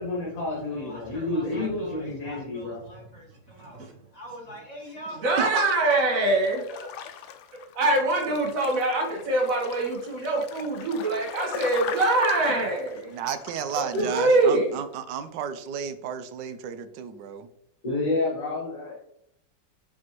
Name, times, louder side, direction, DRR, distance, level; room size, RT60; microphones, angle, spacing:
voice 1, 0.0-2.8 14.0-14.1 17.8-19.0, left 2 dB, 50° left, -5 dB, 2.0 m, -29 dB
voice 2, 0.7-3.8 4.1-5.8 6.7-6.9 11.7-12.0, equal, 20° left, -3 dB, 1.6 m, -43 dB
voice 3, 3.6-3.9 5.2-6.6 7.7-13.1 13.7-14.8, right 2 dB, 50° right, -1 dB, 1.8 m, -24 dB
voice 4, 5.4-5.7 13.1-17.5, right 7 dB, 80° right, 10 dB, 1.3 m, -32 dB
sound 1, 6.2-14.6 14.8-14.9, left 8 dB, 70° left, 1.1 m, -40 dB
8.4 x 4.3 x 3.0 m, 0.75 s
omnidirectional pair, 1.9 m